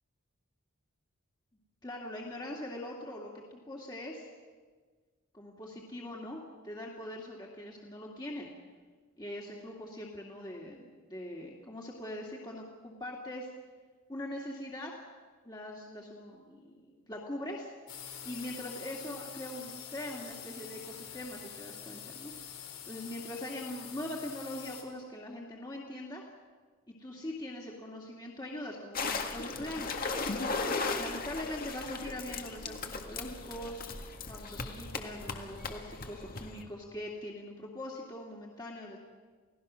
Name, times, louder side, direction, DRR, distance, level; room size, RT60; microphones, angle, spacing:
voice 1, 1.8-4.3 5.3-8.5 9.2-13.5 14.1-14.9 15.4-17.7 18.2-22.3 22.8-26.2 26.9-29.9 31.0-33.9 34.3-39.0, left 1 dB, 20° left, -3 dB, 2.3 m, -42 dB
sound 1, 17.9-24.8, left 8 dB, 80° left, 3.9 m, -46 dB
sound 2, 28.9-36.6, left 3 dB, 45° left, 1.8 m, -37 dB
29.5 x 17.5 x 6.3 m, 1.5 s
head